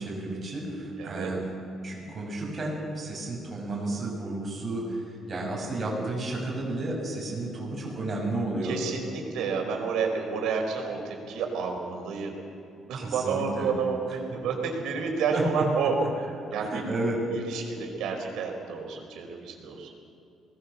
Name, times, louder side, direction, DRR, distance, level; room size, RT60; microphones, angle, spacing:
voice 1, 0.0-1.4 1.8-8.8 12.9-13.7 15.3-15.6 16.5-17.2, right 2 dB, 30° right, -2 dB, 6.8 m, -32 dB
voice 2, 1.0-1.3 8.6-12.3 12.9-16.8 17.3-19.9, right 5 dB, 90° right, 2 dB, 4.6 m, -30 dB
23.0 x 19.5 x 7.1 m, 2.6 s
cardioid pair, 145°, 0 cm